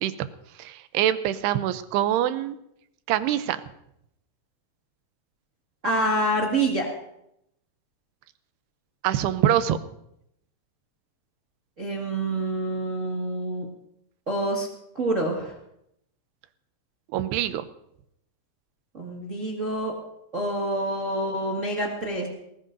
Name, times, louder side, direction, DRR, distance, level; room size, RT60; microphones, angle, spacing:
voice 1, 0.6-2.6 3.1-3.6 9.0-9.8 17.1-17.7, right 11 dB, 80° right, 12 dB, 2.7 m, -24 dB
voice 2, 5.8-6.9 11.8-13.7 14.3-14.7 14.9-15.5 18.9-19.9 20.3-22.3, right 1 dB, 45° right, -2 dB, 1.0 m, -27 dB
20.0 x 19.5 x 2.7 m, 0.78 s
omnidirectional pair, 4.8 m